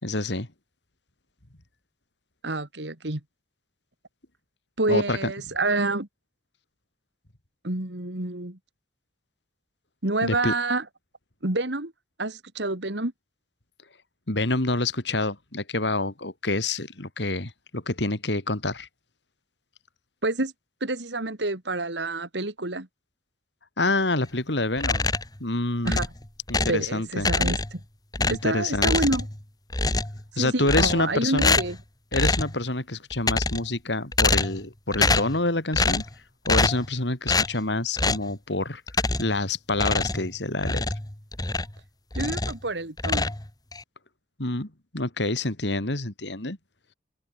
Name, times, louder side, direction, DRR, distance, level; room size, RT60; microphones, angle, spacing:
voice 1, 0.0-0.5 4.9-5.3 10.2-10.5 14.3-18.9 23.8-25.1 25.4-26.0 26.5-27.3 28.2-28.9 30.4-31.6 32.1-36.0 36.5-38.8 39.2-40.8 44.4-46.6, left 2 dB, 70° left, 3.5 m, -27 dB
voice 2, 2.4-3.2 4.8-6.1 7.6-8.6 10.0-10.8 11.4-11.9 12.2-13.1 20.2-20.5 20.8-22.9 25.8-26.1 26.7-27.8 28.3-29.3 30.4-31.8 42.1-43.3, right 2 dB, 70° right, 2.7 m, -28 dB
sound 1, 24.8-25.4 25.9-26.9 27.2-27.8 28.1-29.4 29.7-30.2 30.7-31.1 31.4-31.8 32.1-32.6 33.1-33.7 34.1-34.7 34.9-35.4 35.7-36.1 36.5-36.9 37.3-37.5 38.0-38.3 38.9-39.4 39.7-41.8 42.1-42.6 43.0-43.8, left 3 dB, 20° left, 1.8 m, -25 dB
open air
head